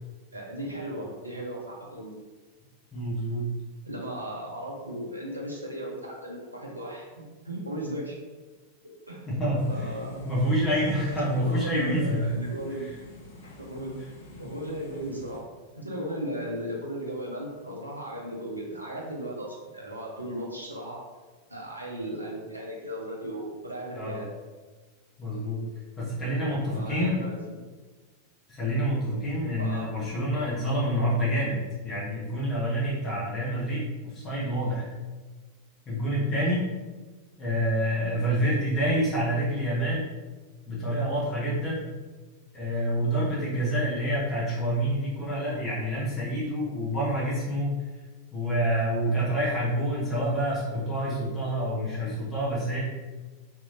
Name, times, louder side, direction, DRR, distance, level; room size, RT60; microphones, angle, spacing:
voice 1, 0.3-2.2 3.8-8.2 9.1-9.2 9.7-10.2 11.2-12.9 13.6-13.9 14.4-15.5 15.7-21.0 21.5-24.3 26.7-27.4 29.6-29.9, right 1 dB, 85° right, -2 dB, 0.7 m, -36 dB
voice 2, 2.9-3.5 9.3-9.9 10.2-12.4 12.8-12.9 23.9-24.2 25.2-25.6 26.0-27.2 28.5-34.9 35.9-36.7 37.4-40.1 40.6-41.9 42.5-47.7 48.3-52.8, equal, 20° left, -7 dB, 1.0 m, -27 dB
sound 1, 9.5-15.4, left 1 dB, 60° left, 0.6 m, -48 dB
3.0 x 2.8 x 2.5 m, 1.3 s
figure-of-eight pair, 90°, 0 cm